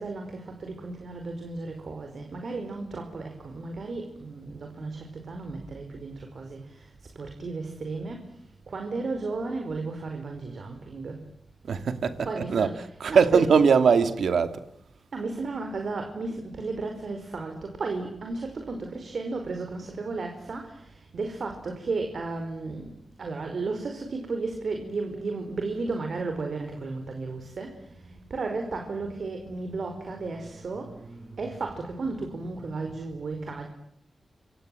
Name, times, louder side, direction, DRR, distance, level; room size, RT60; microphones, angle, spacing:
voice 1, 0.0-8.4 8.7-11.2 12.2-13.6 15.1-22.9 23.2-33.7, right 3 dB, 60° right, 4.9 m, -34 dB
voice 2, 11.6-14.6, right 6 dB, 80° right, 2.5 m, -22 dB
29.5 x 25.5 x 7.8 m
wide cardioid pair, 90°, 0 cm